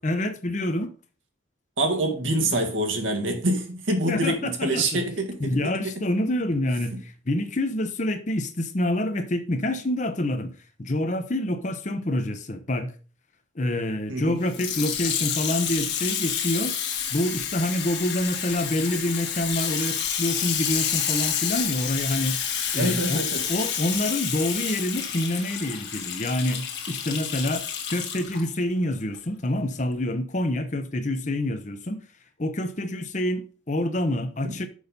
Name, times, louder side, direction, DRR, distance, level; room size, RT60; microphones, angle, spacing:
voice 1, 0.0-0.9 2.5-2.6 4.1-5.0 5.4-10.5 10.8-12.9 13.6-16.8 17.1-22.4 22.7-23.2 23.5-32.0 32.4-34.7, left 1 dB, 40° left, 0.8 m, -27 dB
voice 2, 1.8-5.4 14.1-14.4 22.7-23.4 34.4-34.5, right 1 dB, 80° right, 1.9 m, -25 dB
Water tap faucet / Sink (filling or washing), 14.4-28.4 29.1-29.2, left 8 dB, 60° left, 1.5 m, -29 dB
6.3 x 5.4 x 5.2 m
head